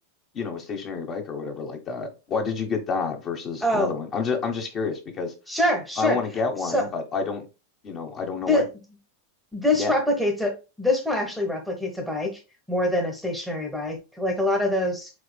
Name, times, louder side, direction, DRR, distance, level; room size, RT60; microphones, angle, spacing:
voice 1, 0.3-5.3 6.0-7.5 7.8-8.6 9.8-9.9, left 5 dB, 30° left, 4 dB, 1.1 m, -29 dB
voice 2, 3.6-3.9 5.5-6.2 6.6-6.9 8.5-8.7 9.5-12.4 12.7-15.1, left 1 dB, ahead, 3 dB, 1.0 m, -25 dB
4.9 x 4.0 x 2.2 m, 0.29 s
figure-of-eight pair, 90°, 0 cm